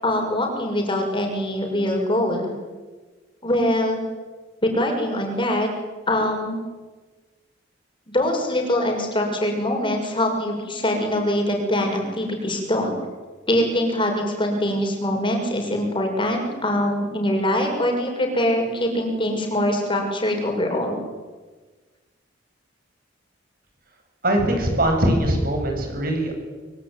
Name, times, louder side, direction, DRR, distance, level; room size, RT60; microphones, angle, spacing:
voice 1, 0.0-2.5 3.4-4.0 4.6-5.7 6.1-6.6 8.1-12.9 13.5-21.0, left 1 dB, 25° left, 2 dB, 6.5 m, -23 dB
voice 2, 24.2-26.3, right 1 dB, 50° right, 3 dB, 8.0 m, -21 dB
25.0 x 24.5 x 9.5 m, 1.3 s
head